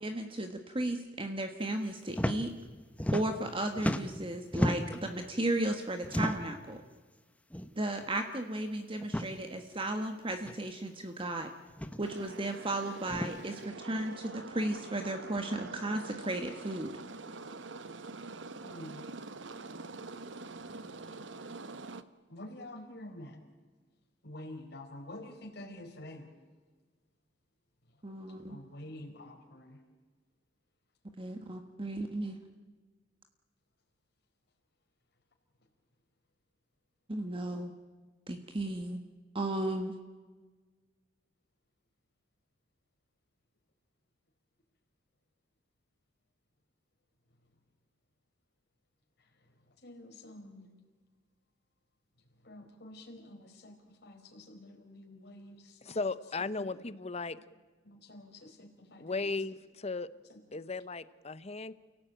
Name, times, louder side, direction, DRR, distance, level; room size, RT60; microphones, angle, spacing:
voice 1, 0.0-2.5 3.1-6.8 7.7-11.5 12.0-16.9 28.0-28.6 31.2-32.4 37.1-37.7 38.3-39.0 39.3-39.9, right 1 dB, 30° right, 6 dB, 1.4 m, -35 dB
sound 1, 2.1-2.4 2.7-3.5 3.8-5.0 6.0-6.6 7.5-7.7 8.0-8.1 9.0-9.3 10.4-10.5 11.7-12.0 13.1-13.3, equal, 10° left, 1.0 m, -33 dB
sound 2, 12.0-22.0, right 3 dB, 80° right, 1.1 m, -45 dB
voice 2, 18.6-19.1 22.3-23.4 24.2-26.3 28.5-29.8 31.6-31.7 49.8-50.7 52.4-56.1 56.6-57.0 57.3-57.4 57.8-59.4 60.3-60.4, left 1 dB, 60° left, 3 dB, 4.7 m, -48 dB
voice 3, 55.8-57.4 59.0-60.1 60.5-61.7, left 3 dB, 35° left, 15 dB, 0.9 m, -36 dB
29.5 x 17.5 x 9.0 m, 1.4 s
head